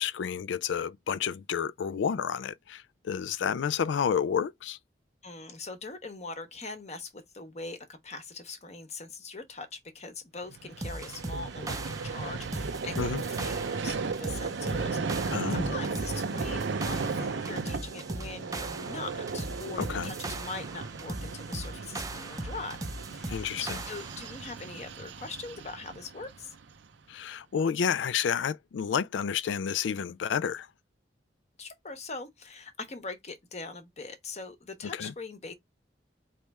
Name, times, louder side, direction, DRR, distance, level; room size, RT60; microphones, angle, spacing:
voice 1, 0.0-4.8 13.0-13.2 15.3-15.7 19.8-20.1 23.3-23.8 27.1-30.7 34.8-35.1, left 7 dB, 85° left, 0.3 m, -30 dB
voice 2, 5.2-11.8 12.0-22.8 23.1-26.6 31.6-35.5, left 3 dB, 40° left, 0.9 m, -42 dB
Vehicle, 10.5-26.8, right 4 dB, 85° right, 0.6 m, -36 dB
sound 1, 10.8-24.4, right 2 dB, 20° right, 0.5 m, -39 dB
4.1 x 3.2 x 3.4 m
head